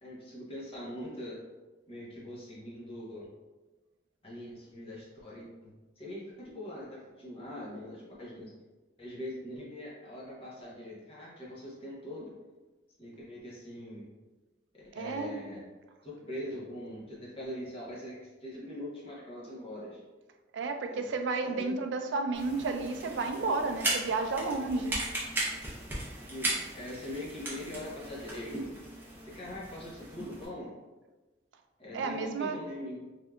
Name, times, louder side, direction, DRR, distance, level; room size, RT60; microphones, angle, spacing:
voice 1, 0.0-1.4 1.9-3.3 4.2-8.5 9.0-12.4 13.0-14.1 14.7-15.6 16.0-20.0 20.9-21.1 21.4-21.7 26.3-28.7 29.0-30.8 31.8-33.0, left 1 dB, 30° left, -6 dB, 0.8 m, -42 dB
voice 2, 14.9-15.4 20.5-25.0 31.9-32.6, right 3 dB, 80° right, 6 dB, 0.3 m, -32 dB
sound 1, 22.3-30.5, right 1 dB, 10° right, 0.6 m, -37 dB
3.3 x 2.7 x 2.3 m, 1.2 s
head